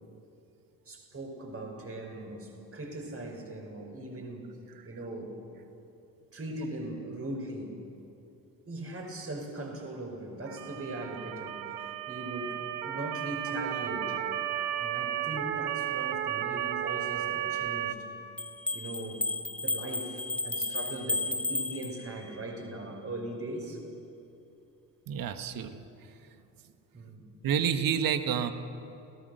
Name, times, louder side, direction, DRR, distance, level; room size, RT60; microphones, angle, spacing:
voice 1, 0.9-4.6 4.8-5.4 6.3-7.8 8.7-14.2 14.8-18.0 18.7-19.2 19.6-23.8 26.9-27.3, right 1 dB, 30° right, 2 dB, 5.8 m, -39 dB
Motor vehicle (road) / Siren, 10.5-17.9, right 11 dB, 70° right, 1.2 m, -33 dB
sound 1, 18.4-22.4, left 2 dB, 5° left, 0.9 m, -33 dB
voice 2, 25.1-25.8 27.4-28.5, right 8 dB, 45° right, 10 dB, 1.6 m, -29 dB
29.5 x 18.0 x 6.7 m, 2.7 s
figure-of-eight pair, 50°, 46 cm